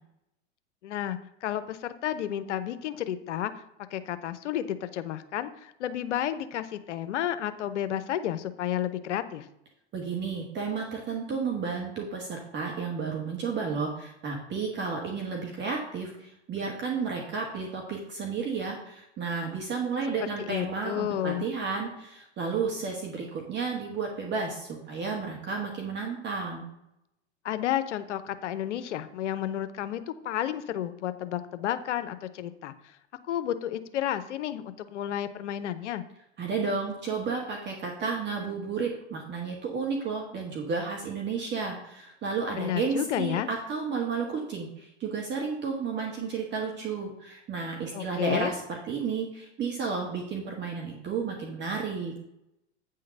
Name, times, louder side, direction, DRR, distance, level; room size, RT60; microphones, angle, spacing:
voice 1, 0.8-3.5 3.9-9.5 20.2-21.5 27.4-32.7 33.2-36.0 42.6-43.5 47.9-48.5, left 11 dB, 80° left, 11 dB, 0.8 m, -31 dB
voice 2, 9.9-26.7 36.4-52.1, right 5 dB, 30° right, 0 dB, 1.6 m, -32 dB
8.7 x 3.8 x 6.4 m, 0.81 s
hypercardioid pair, 110°, 35 cm